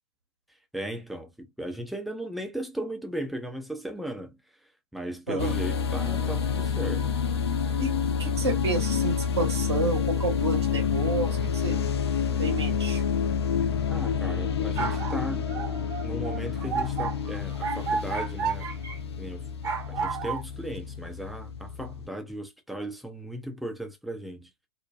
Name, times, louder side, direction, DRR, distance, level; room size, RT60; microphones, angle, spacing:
voice 1, 0.7-4.4 4.9-7.1 13.9-15.7 16.0-18.7 19.2-19.5 19.9-24.5, right 1 dB, ahead, 0.5 m, -36 dB
sound 1, 5.4-22.1, left 7 dB, 65° left, 0.5 m, -28 dB
voice 2, 6.8-7.2 7.8-11.9 12.4-13.0, right 3 dB, 65° right, 1.2 m, -31 dB
sound 2, 14.5-19.0 19.6-20.4, right 6 dB, 25° right, 0.8 m, -32 dB
2.6 x 2.1 x 2.3 m
figure-of-eight pair, 100°, 15 cm